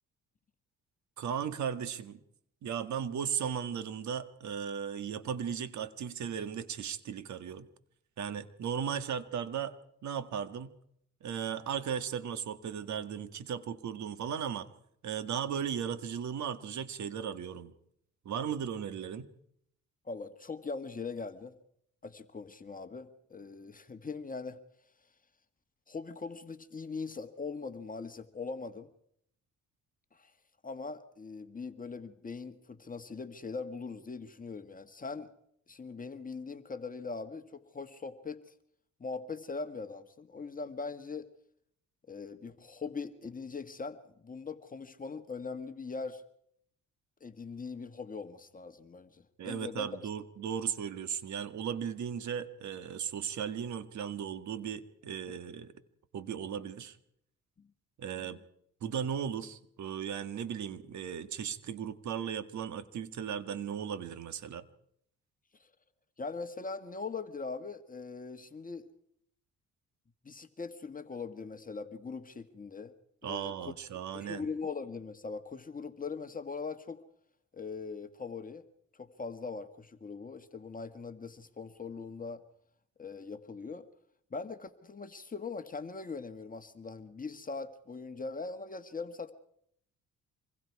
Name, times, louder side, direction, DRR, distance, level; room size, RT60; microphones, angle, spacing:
voice 1, 1.2-2.2 2.6-7.7 8.2-9.7 10.0-10.7 11.2-14.7 15.0-17.7 18.3-19.3 49.4-55.7 56.1-57.0 58.0-58.4 58.8-64.6 73.2-74.4, right 8 dB, 70° right, 12 dB, 1.8 m, -36 dB
voice 2, 20.0-21.6 22.0-24.6 25.9-28.9 30.1-30.3 30.6-35.3 35.7-38.5 39.0-41.3 42.1-46.2 47.2-50.1 55.3-55.4 57.6-57.7 58.1-58.4 65.6-65.7 66.2-68.9 70.2-72.9 73.2-73.7 74.1-77.0 77.5-78.6 78.9-82.4 83.0-83.9 84.3-89.3, left 4 dB, 25° left, 9 dB, 1.6 m, -41 dB
26.5 x 21.5 x 4.8 m, 0.70 s
cardioid pair, 90°, 30 cm